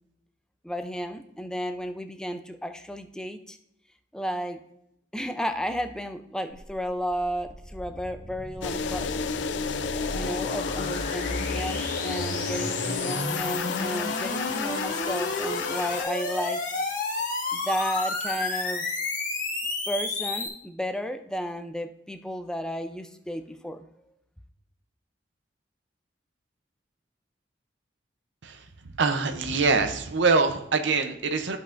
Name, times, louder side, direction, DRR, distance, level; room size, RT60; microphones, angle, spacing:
voice 1, 0.6-3.6 4.1-4.6 5.1-9.3 10.1-16.6 17.5-18.9 19.9-23.9, equal, 5° left, 7 dB, 0.5 m, -33 dB
sound 1, 6.5-20.5, left 2 dB, 45° left, 1.5 m, -32 dB
sound 2, 8.6-16.0, left 6 dB, 75° left, 0.4 m, -31 dB
voice 2, 29.0-31.6, right 4 dB, 85° right, 6 dB, 0.7 m, -24 dB
13.5 x 5.4 x 2.6 m, 0.77 s
head